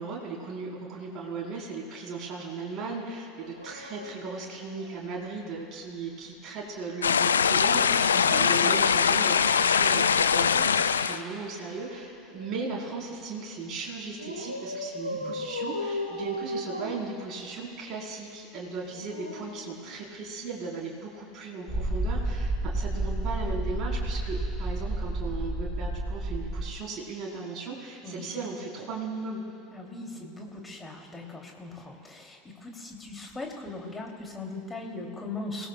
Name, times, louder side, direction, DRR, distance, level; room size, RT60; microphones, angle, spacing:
voice 1, 0.0-29.4, right 4 dB, 40° right, -2 dB, 3.7 m, -37 dB
Dog, 3.4-5.3 7.7-10.1 11.4-13.0 14.2-17.7 18.7-20.4 21.6-21.8, left 1 dB, 90° right, 1.5 m, -38 dB
sound 1, 7.0-11.2, left 6 dB, 75° left, 0.4 m, -22 dB
sound 2, 21.7-26.7, right 1 dB, ahead, 3.2 m, -30 dB
voice 2, 29.7-35.7, left 2 dB, 15° left, 1 dB, 2.7 m, -39 dB
26.0 x 18.0 x 2.2 m, 2.8 s
figure-of-eight pair, 75°, 0 cm